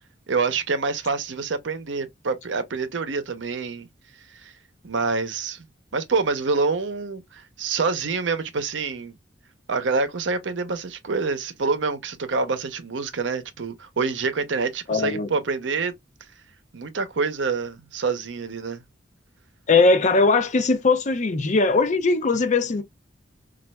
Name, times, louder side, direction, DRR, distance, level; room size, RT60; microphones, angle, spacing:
voice 1, 0.3-3.9 4.4-4.5 4.8-5.6 5.9-9.2 9.7-15.9 16.7-18.8, right 4 dB, 80° right, 0.7 m, -26 dB
voice 2, 14.9-15.3 19.7-22.8, left 3 dB, 40° left, 0.5 m, -20 dB
4.1 x 2.4 x 2.2 m
head